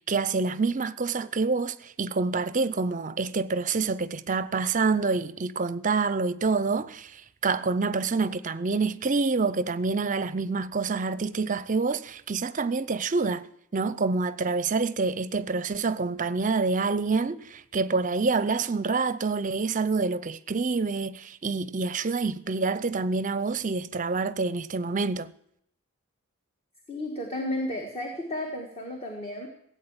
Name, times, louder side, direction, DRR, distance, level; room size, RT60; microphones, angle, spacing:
voice 1, 0.1-13.5 13.7-25.3, right 4 dB, 35° right, 0.6 m, -27 dB
voice 2, 26.9-29.5, left 1 dB, 30° left, 1.7 m, -33 dB
16.5 x 8.4 x 8.8 m
head